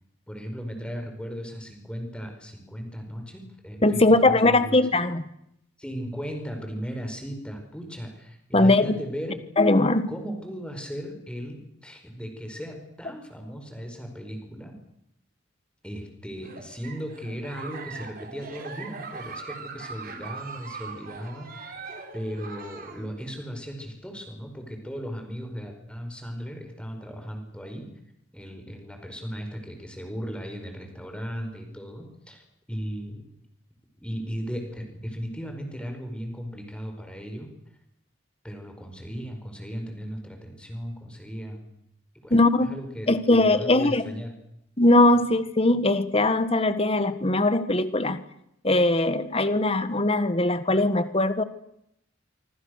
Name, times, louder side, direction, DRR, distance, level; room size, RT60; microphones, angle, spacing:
voice 1, 0.3-4.8 5.8-9.4 10.1-14.7 15.8-21.8 22.1-27.9 28.3-32.4 32.7-33.2 34.0-37.5 38.4-41.7 42.2-43.1 43.4-44.3, equal, 5° left, 4 dB, 5.2 m, -36 dB
voice 2, 3.8-5.2 8.5-8.9 9.6-10.1 42.3-42.7 43.1-44.0 44.8-48.2 48.6-51.4, left 2 dB, 30° left, 11 dB, 1.6 m, -20 dB
Giggle, 16.4-23.1, right 4 dB, 45° right, 3.8 m, -41 dB
26.0 x 25.5 x 6.6 m, 0.77 s
head